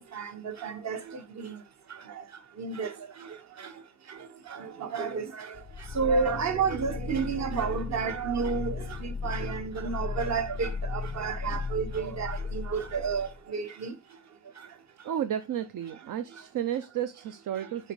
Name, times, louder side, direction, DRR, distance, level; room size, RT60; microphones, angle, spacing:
voice 1, 0.1-1.0 1.4-1.5 2.6-2.9 4.8-5.2 6.0-8.7 9.2-13.9, right 5 dB, 50° right, 1.3 m, -30 dB
sound 1, 5.5-13.4, left 4 dB, 25° left, 0.4 m, -36 dB
voice 2, 15.0-17.9, right 10 dB, 65° right, 0.7 m, -32 dB
7.7 x 5.2 x 4.7 m
wide cardioid pair, 180°, 34 cm